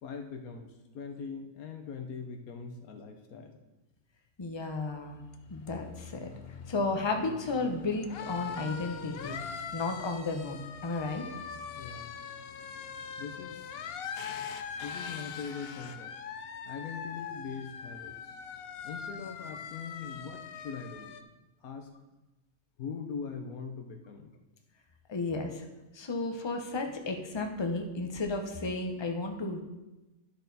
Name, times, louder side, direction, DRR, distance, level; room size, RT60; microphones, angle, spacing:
voice 1, 0.0-3.6 11.7-12.1 13.2-13.7 14.8-16.1 16.6-18.4 18.8-21.2 21.6-21.9 22.8-24.3, left 5 dB, 80° left, 4 dB, 1.3 m, -41 dB
voice 2, 4.4-5.2 5.5-6.3 6.7-9.4 9.7-11.2 25.1-25.7 25.9-29.6, left 3 dB, 25° left, 4 dB, 0.7 m, -33 dB
sound 1, 4.8-21.2, left 6 dB, 60° left, 0.6 m, -42 dB
11.5 x 6.4 x 4.0 m, 1.0 s
omnidirectional pair, 1.5 m